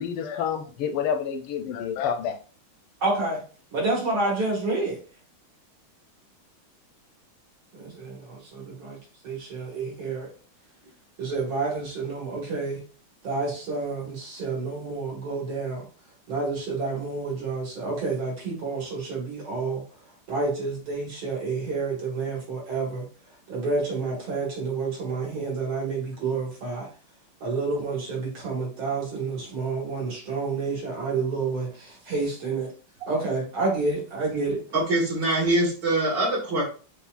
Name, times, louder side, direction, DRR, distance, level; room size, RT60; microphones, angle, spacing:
voice 1, 0.0-2.4, left 7 dB, 90° left, 8 dB, 1.5 m, -28 dB
voice 2, 3.0-3.4 3.7-5.0 7.7-9.0 9.2-10.3 11.2-12.8 13.2-15.8 16.3-19.8 20.3-23.0 23.5-26.9 27.4-32.7 33.1-34.6, right 3 dB, 75° right, -3 dB, 2.8 m, -29 dB
voice 3, 34.7-36.6, right 1 dB, 60° right, -5 dB, 2.5 m, -23 dB
6.9 x 2.5 x 2.4 m, 0.37 s
omnidirectional pair, 2.3 m